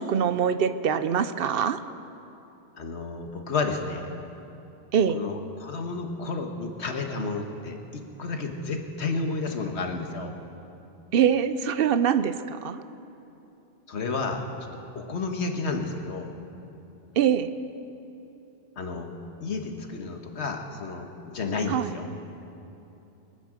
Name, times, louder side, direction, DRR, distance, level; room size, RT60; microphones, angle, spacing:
voice 1, 0.0-1.8 4.9-5.2 11.1-12.8 17.2-17.5 21.7-21.9, right 8 dB, 65° right, 12 dB, 0.8 m, -23 dB
voice 2, 2.8-4.1 5.1-10.3 13.9-14.4 14.9-16.3 18.8-19.1 19.4-22.0, left 3 dB, 90° left, 4 dB, 1.5 m, -31 dB
23.5 x 9.1 x 5.0 m, 3.0 s
omnidirectional pair, 1.1 m